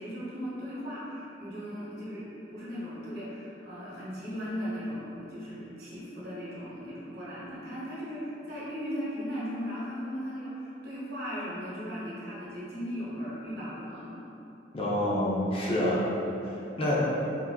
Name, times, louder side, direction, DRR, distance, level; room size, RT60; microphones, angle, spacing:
voice 1, 0.0-14.2, equal, 60° right, -8 dB, 0.9 m, -37 dB
voice 2, 14.7-16.0 16.4-17.0, left 1 dB, 30° left, -6 dB, 0.4 m, -28 dB
3.6 x 2.5 x 2.2 m, 2.9 s
head